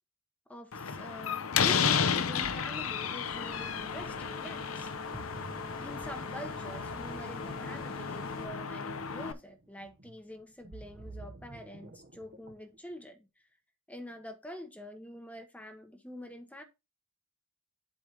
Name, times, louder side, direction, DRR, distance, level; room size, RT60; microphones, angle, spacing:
voice 1, 0.5-4.9 5.8-13.3 13.9-16.6, equal, 5° left, 1.1 m, -46 dB
Slam, 0.7-9.3, left 7 dB, 90° left, 0.8 m, -33 dB
Ocean, 2.1-12.8, right 2 dB, 50° right, 1.2 m, -51 dB
sound 1, 3.2-8.5, left 2 dB, 45° left, 1.9 m, -45 dB
8.1 x 3.5 x 6.0 m
head